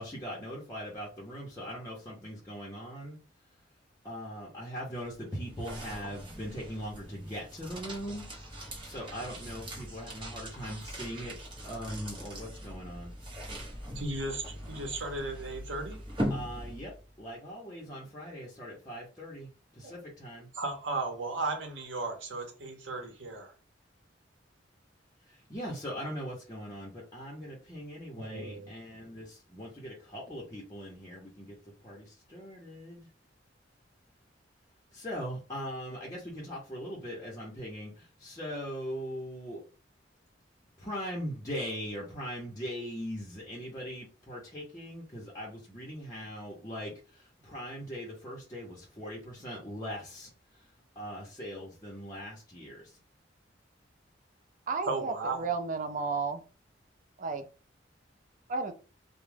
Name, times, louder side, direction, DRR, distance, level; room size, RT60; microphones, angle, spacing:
voice 1, 0.0-3.2 4.0-8.3 8.5-11.4 11.6-13.1 16.3-20.5 25.3-31.6 31.8-33.1 34.9-39.6 40.8-50.7 51.0-53.0, equal, 20° left, 0.6 m, -40 dB
sound 1, 4.9-17.1, equal, 25° right, 0.9 m, -41 dB
voice 2, 13.9-16.0 19.8-19.9 20.5-23.5 28.2-28.7 54.9-55.5, right 3 dB, 85° right, 0.7 m, -35 dB
voice 3, 54.7-56.4 57.2-57.4 58.5-58.7, right 4 dB, 45° right, 0.4 m, -33 dB
2.2 x 2.0 x 3.2 m
head